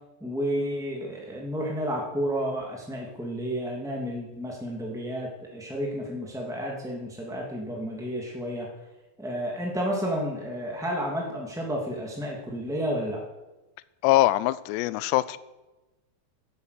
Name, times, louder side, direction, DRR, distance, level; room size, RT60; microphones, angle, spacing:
voice 1, 0.2-8.7 9.2-13.2, equal, ahead, -2 dB, 0.8 m, -31 dB
voice 2, 14.0-15.4, left 16 dB, 85° left, 17 dB, 2.7 m, -22 dB
12.5 x 11.0 x 8.4 m, 1.1 s
omnidirectional pair, 4.9 m